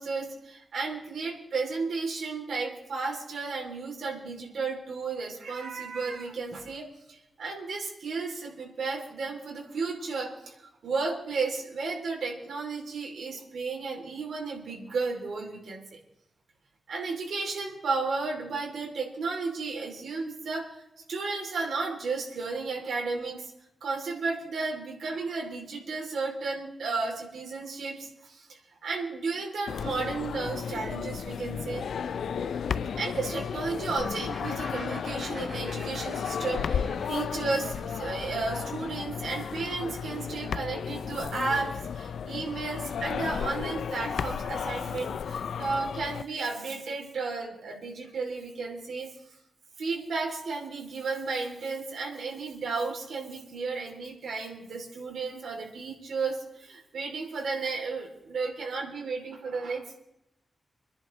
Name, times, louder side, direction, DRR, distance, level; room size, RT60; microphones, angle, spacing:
voice 1, 0.0-16.0 16.9-20.7 21.1-23.5 23.8-31.9 33.0-49.1 49.8-60.0, right 4 dB, 85° right, 0 dB, 3.2 m, -33 dB
sound 1, 29.7-46.2, left 7 dB, 85° left, 0.4 m, -33 dB
sound 2, 34.3-41.8, right 2 dB, 30° right, 6.7 m, -48 dB
28.0 x 10.5 x 3.3 m, 0.87 s
wide cardioid pair, 165°, 0 cm